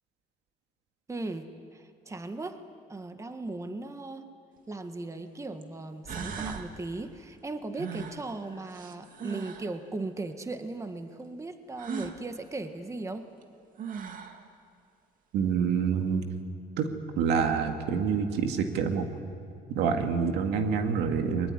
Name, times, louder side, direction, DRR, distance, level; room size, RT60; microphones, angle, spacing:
voice 1, 1.1-2.6 2.9-4.3 4.7-13.3, right 2 dB, 15° right, 8 dB, 1.6 m, -37 dB
sound 1, 4.6-4.7 5.6-5.7 6.1-6.7 7.8-9.7 11.8-12.2 13.4-13.5 13.8-14.4, right 6 dB, 55° right, 2.3 m, -38 dB
voice 2, 15.3-16.2 16.8-19.1 19.7-21.5, right 6 dB, 85° right, 5 dB, 2.2 m, -27 dB
22.0 x 21.0 x 10.0 m, 2.4 s
cardioid pair, 110°, 17 cm